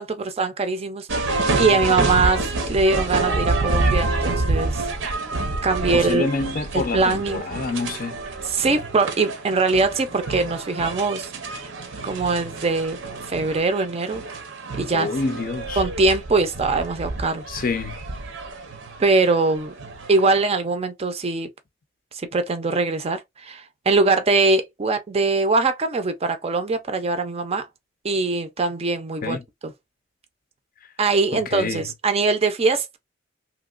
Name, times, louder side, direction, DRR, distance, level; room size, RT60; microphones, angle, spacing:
voice 1, 0.0-4.9 5.6-6.3 6.7-7.5 8.4-11.3 12.0-13.0 13.3-14.2 14.8-15.1 15.7-17.4 19.0-19.7 20.1-21.5 22.1-27.7 28.0-29.7 31.0-33.0, right 3 dB, 35° right, 0.5 m, -22 dB
sound 1, 1.1-20.5, right 3 dB, 85° right, 0.7 m, -28 dB
voice 2, 5.9-8.2 14.9-15.8 17.5-17.9 29.2-29.4 31.3-31.8, left 4 dB, 50° left, 0.5 m, -27 dB
2.9 x 2.8 x 2.4 m
head